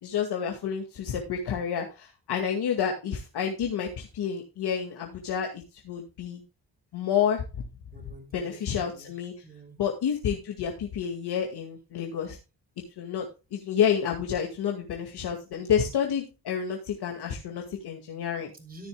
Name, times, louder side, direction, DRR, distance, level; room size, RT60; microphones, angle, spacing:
voice 1, 0.0-6.4 6.9-7.4 8.3-9.3 9.8-12.4 13.0-13.3 13.5-18.5, left 8 dB, 85° left, 2.2 m, -29 dB
voice 2, 7.9-9.8 18.5-18.9, right 2 dB, 20° right, 3.8 m, -48 dB
14.5 x 10.0 x 2.3 m
cardioid pair, 100°, 39 cm